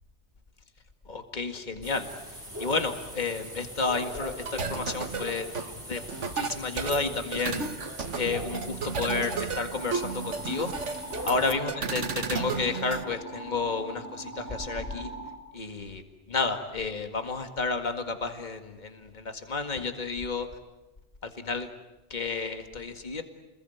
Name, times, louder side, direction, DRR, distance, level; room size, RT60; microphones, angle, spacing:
voice 1, 1.1-2.1 2.6-7.7 8.1-10.7 11.3-15.1 15.5-16.0 16.3-20.5 21.2-21.7 22.1-23.2, left 4 dB, 40° left, 7 dB, 2.1 m, -31 dB
sound 1, 1.8-11.5, equal, 10° right, 5.6 m, -41 dB
sound 2, 4.5-13.0, right 5 dB, 85° right, 1.7 m, -33 dB
sound 3, 9.7-15.4, right 2 dB, 15° left, 5.3 m, -42 dB
29.5 x 21.0 x 9.3 m, 1.0 s
omnidirectional pair, 1.2 m